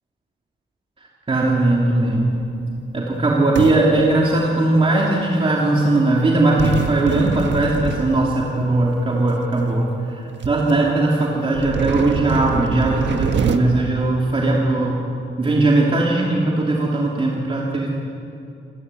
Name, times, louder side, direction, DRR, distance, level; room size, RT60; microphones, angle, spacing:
voice 1, 1.3-2.4 2.9-15.0 15.4-17.9, right 2 dB, 30° right, -3 dB, 3.1 m, -19 dB
sound 1, 2.0-2.7 3.5-4.8 6.6-8.7 9.5-9.6 10.1-10.2 10.4-10.7 11.5-13.6, right 6 dB, 65° right, 1.5 m, -26 dB
27.5 x 21.0 x 9.9 m, 2.6 s
wide cardioid pair, 165°, 20 cm